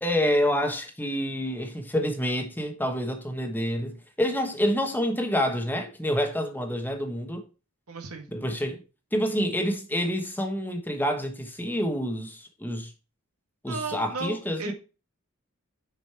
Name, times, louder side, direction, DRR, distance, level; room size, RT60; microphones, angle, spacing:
voice 1, 0.0-7.4 8.3-8.8 9.1-12.9 13.6-14.7, equal, 10° left, 1.1 m, -28 dB
voice 2, 7.9-8.3 13.7-14.7, right 3 dB, 75° right, 1.6 m, -35 dB
6.5 x 5.1 x 4.6 m
head